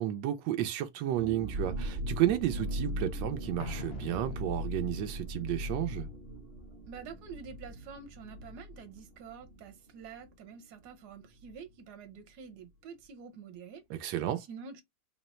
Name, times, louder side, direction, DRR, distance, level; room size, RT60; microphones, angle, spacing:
voice 1, 0.0-6.1 13.9-14.4, right 12 dB, 90° right, 1.3 m, -32 dB
sound 1, 1.1-10.5 10.8-10.9 11.2-11.5, equal, 45° right, 0.9 m, -39 dB
Explosion, 3.6-5.3, left 6 dB, 60° left, 0.6 m, -44 dB
voice 2, 6.9-14.8, right 6 dB, 65° right, 1.4 m, -48 dB
3.9 x 2.0 x 4.1 m
omnidirectional pair, 1.9 m